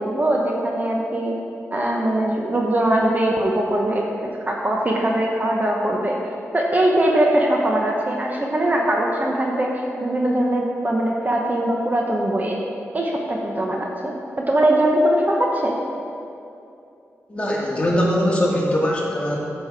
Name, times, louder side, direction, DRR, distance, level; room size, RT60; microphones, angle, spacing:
voice 1, 0.0-1.4 1.7-4.1 4.5-6.2 6.5-12.6 12.9-15.7, right 1 dB, 30° right, -1 dB, 1.1 m, -21 dB
voice 2, 17.3-19.4, equal, 25° left, -4 dB, 2.1 m, -21 dB
8.8 x 6.3 x 4.8 m, 2.6 s
cardioid pair, 65°, 5 cm